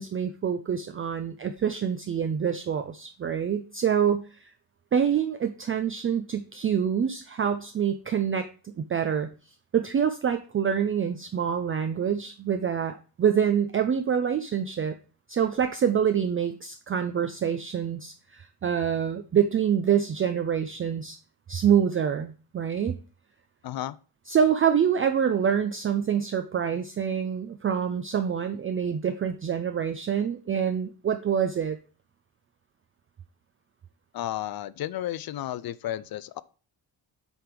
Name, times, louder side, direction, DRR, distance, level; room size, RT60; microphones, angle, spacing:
voice 1, 0.0-4.5 4.9-9.3 9.7-15.0 15.3-21.2 21.5-23.0 24.3-31.8, right 8 dB, 30° right, 0.4 m, -26 dB
voice 2, 23.6-24.0 34.1-36.4, left 12 dB, 60° left, 0.5 m, -33 dB
8.1 x 3.5 x 5.9 m
wide cardioid pair, 155°, 43 cm